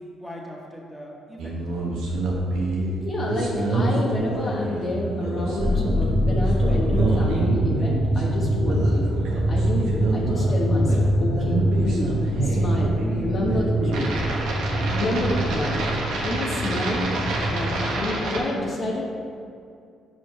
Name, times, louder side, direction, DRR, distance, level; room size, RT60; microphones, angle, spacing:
voice 1, 0.0-2.0, equal, 10° left, -2 dB, 1.7 m, -41 dB
sound 1, 1.4-18.4, right 2 dB, 75° right, 1.2 m, -28 dB
voice 2, 3.0-9.1 9.5-12.1 12.4-12.9 13.2-14.2 14.7-15.9 16.2-17.1 17.5-19.0, left 1 dB, 50° left, -3 dB, 1.2 m, -29 dB
sound 2, 5.6-18.1, equal, 35° right, 1.1 m, -24 dB
sound 3, 10.6-18.5, left 4 dB, 70° left, 1.2 m, -43 dB
5.8 x 5.1 x 5.7 m, 2.4 s
supercardioid pair, 55°, 0 cm